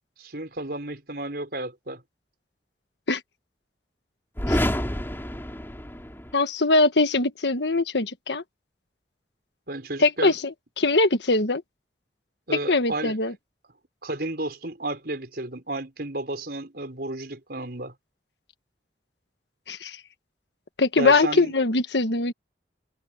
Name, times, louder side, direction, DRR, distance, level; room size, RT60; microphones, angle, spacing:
voice 1, 0.2-2.0 9.7-10.4 12.5-13.2 14.0-17.9 21.0-21.6, right 2 dB, 60° right, 5.7 m, -32 dB
sound 1, 4.3-6.4, equal, 15° left, 3.2 m, -28 dB
voice 2, 6.3-8.4 10.0-11.6 12.7-13.3 19.7-20.0 20.8-22.3, left 3 dB, 75° left, 1.5 m, -22 dB
head